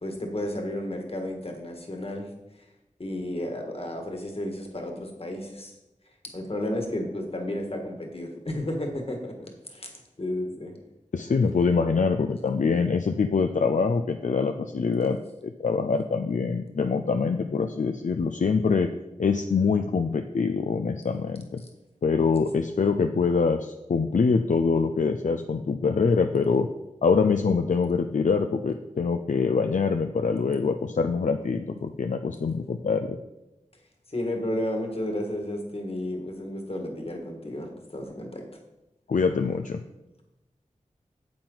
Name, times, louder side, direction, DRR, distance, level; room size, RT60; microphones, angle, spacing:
voice 1, 0.0-2.3 3.0-5.7 6.2-9.9 10.2-10.8 21.6-21.7 34.1-38.4, left 1 dB, 50° left, 2 dB, 1.8 m, -32 dB
voice 2, 11.1-18.9 19.2-21.6 22.0-26.7 27.0-33.2 39.1-39.8, left 5 dB, 75° left, 6 dB, 0.5 m, -24 dB
8.6 x 7.8 x 4.0 m, 0.97 s
wide cardioid pair, 45°, 13 cm